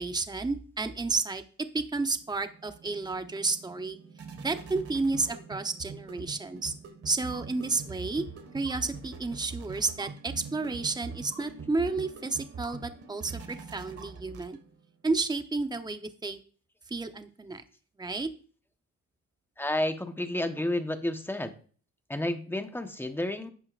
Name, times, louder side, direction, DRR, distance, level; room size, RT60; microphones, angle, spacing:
voice 1, 0.0-1.4 1.7-4.0 4.4-6.7 7.0-8.2 8.5-14.6 15.0-16.4 16.9-17.6 18.0-18.3, right 3 dB, 15° right, 8 dB, 0.9 m, -31 dB
sound 1, 2.1-14.9, right 5 dB, 50° right, 1.8 m, -44 dB
voice 2, 19.6-21.5 22.1-23.5, left 1 dB, 5° left, 7 dB, 1.1 m, -31 dB
11.5 x 8.5 x 2.5 m, 0.43 s
cardioid pair, 90°, 30 cm